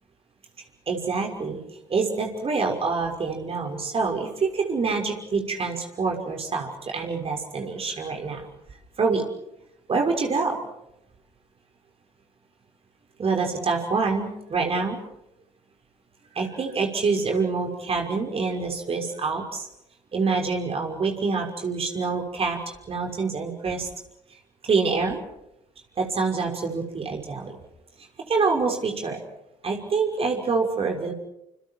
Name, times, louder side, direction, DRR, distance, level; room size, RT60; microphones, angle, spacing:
voice 1, 0.9-1.6 1.9-8.5 9.0-9.3 9.9-10.6 13.2-15.0 16.3-19.7 20.1-23.9 24.6-25.2 26.0-27.6 28.2-29.2 29.6-31.1, right 4 dB, 35° right, 2 dB, 5.9 m, -26 dB
30.0 x 29.5 x 4.8 m, 0.83 s
figure-of-eight pair, 55°, 16 cm